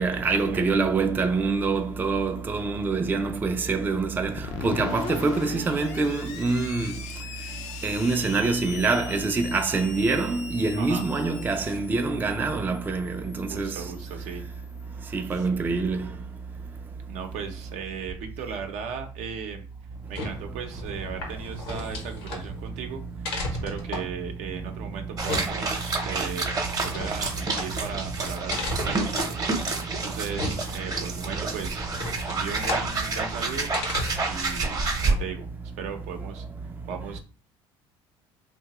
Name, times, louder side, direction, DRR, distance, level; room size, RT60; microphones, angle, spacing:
voice 1, 0.0-6.9 7.8-13.7 15.1-16.1, right 3 dB, 15° right, 0.3 m, -25 dB
Screech, 4.4-14.8, left 6 dB, 70° left, 0.4 m, -40 dB
voice 2, 13.5-14.5 15.3-15.5 17.1-19.7 20.1-23.3 23.6-29.5 30.0-31.9 32.3-33.7 34.3-35.5 35.8-37.2, right 6 dB, 70° right, 0.6 m, -37 dB
sound 1, 19.9-34.4, left 2 dB, 90° left, 0.9 m, -36 dB
sound 2, 25.2-35.1, right 3 dB, 30° right, 0.8 m, -29 dB
2.8 x 2.2 x 2.9 m
supercardioid pair, 85°, 12 cm